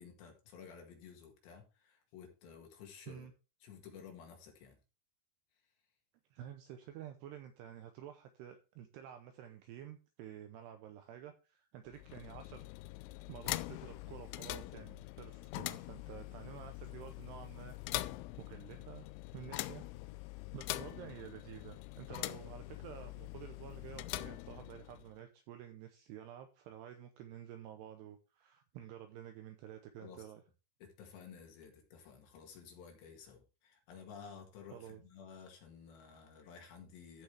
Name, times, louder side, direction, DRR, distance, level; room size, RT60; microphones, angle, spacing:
voice 1, 0.0-3.3 3.6-4.8 30.0-30.3 30.8-37.2, left 6 dB, 70° left, 2 dB, 3.8 m, -53 dB
voice 2, 6.3-12.6 13.3-17.8 18.4-19.9 20.5-30.4 34.7-35.0, right 10 dB, 75° right, 7 dB, 2.6 m, -50 dB
sound 1, 11.9-25.2, left 18 dB, 85° left, 2.9 m, -44 dB
14.0 x 6.1 x 3.4 m, 0.31 s
omnidirectional pair, 5.5 m